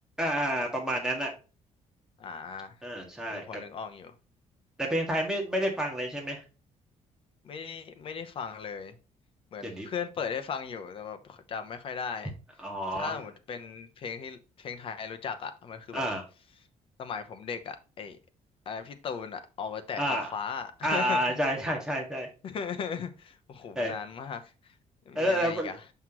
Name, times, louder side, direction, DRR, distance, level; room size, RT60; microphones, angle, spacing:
voice 1, 0.2-1.3 2.8-3.4 4.8-6.4 9.6-9.9 12.6-13.2 15.9-16.2 20.0-20.3 20.8-22.3 23.8-23.9 25.2-25.7, equal, 5° right, 1.8 m, -29 dB
voice 2, 2.2-2.7 3.3-4.1 7.4-9.0 9.5-12.3 12.9-16.0 17.0-18.2 18.7-21.4 22.4-24.5 25.1-25.8, left 6 dB, 45° left, 0.8 m, -37 dB
6.0 x 5.7 x 3.0 m
cardioid pair, 160°, 13 cm